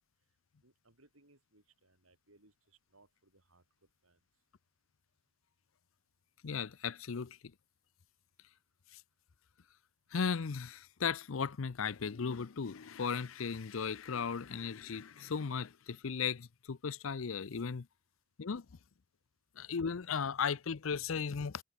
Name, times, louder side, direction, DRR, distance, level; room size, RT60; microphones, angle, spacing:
voice 1, 0.6-3.6 4.0-4.2, right 2 dB, 85° right, 7.7 m, -67 dB
voice 2, 6.4-7.4 10.1-17.9 18.4-18.7 19.6-21.6, left 6 dB, 75° left, 0.6 m, -36 dB
head